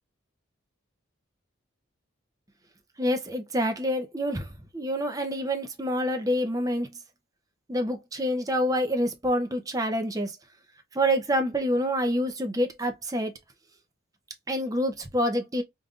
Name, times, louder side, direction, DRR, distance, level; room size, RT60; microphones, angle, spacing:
voice 1, 3.0-7.0 7.7-10.4 10.9-13.3 14.5-15.6, equal, 15° right, 0.5 m, -27 dB
5.1 x 2.6 x 2.4 m
head